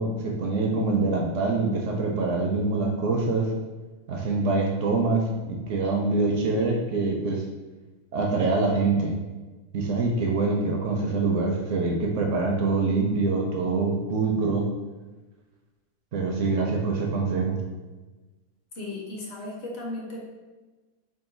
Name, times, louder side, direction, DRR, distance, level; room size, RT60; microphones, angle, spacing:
voice 1, 0.0-3.5 4.1-7.4 8.1-9.2 9.7-14.7 16.1-17.6, right 3 dB, 75° right, 0 dB, 0.7 m, -25 dB
voice 2, 18.7-20.2, left 2 dB, 55° left, -2 dB, 0.9 m, -35 dB
3.8 x 2.3 x 3.8 m, 1.2 s
omnidirectional pair, 1.7 m